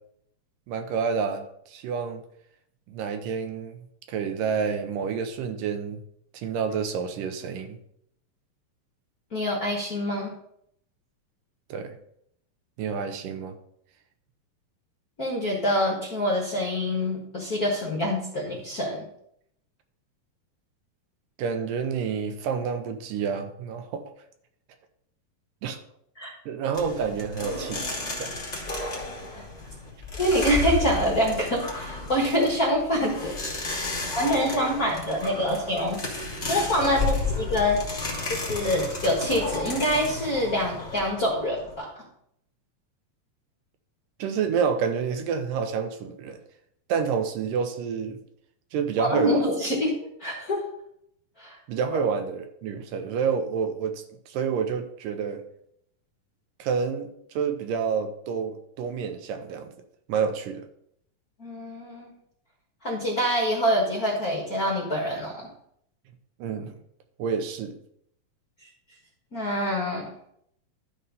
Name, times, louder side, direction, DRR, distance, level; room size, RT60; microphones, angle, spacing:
voice 1, 0.7-2.2 2.9-6.0 6.3-7.8 11.7-12.0 12.8-13.6 21.4-24.0 25.6-25.8 26.5-28.3 44.2-46.4 46.9-48.2 48.7-49.5 51.7-55.4 56.6-59.7 60.1-60.7 66.4-66.8 67.2-67.8, right 6 dB, 80° right, 7 dB, 2.3 m, -29 dB
voice 2, 9.3-10.3 15.2-19.1 26.2-26.3 29.3-29.4 30.1-33.3 34.2-36.0 36.5-37.8 38.5-41.9 49.0-49.9 50.2-50.6 51.4-51.6 61.4-62.1 62.8-65.5 69.3-70.1, equal, 45° left, -2 dB, 1.2 m, -25 dB
sound 1, 26.7-41.7, left 2 dB, 15° left, 1.4 m, -33 dB
12.0 x 4.4 x 5.3 m, 0.73 s
omnidirectional pair, 4.0 m